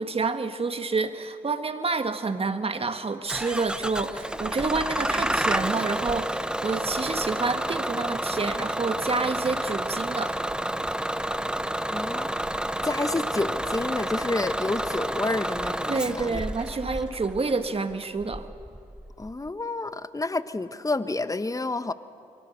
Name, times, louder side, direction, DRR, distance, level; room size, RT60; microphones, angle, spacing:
voice 1, 0.0-10.3 15.9-18.5, right 4 dB, 35° right, 9 dB, 1.8 m, -28 dB
Bus / Engine starting, 3.3-19.5, right 1 dB, 5° right, 0.9 m, -30 dB
voice 2, 11.9-12.3 12.8-16.4 19.2-21.9, left 2 dB, 20° left, 12 dB, 1.3 m, -29 dB
28.0 x 23.5 x 6.8 m, 2.4 s
hypercardioid pair, 40°, 18 cm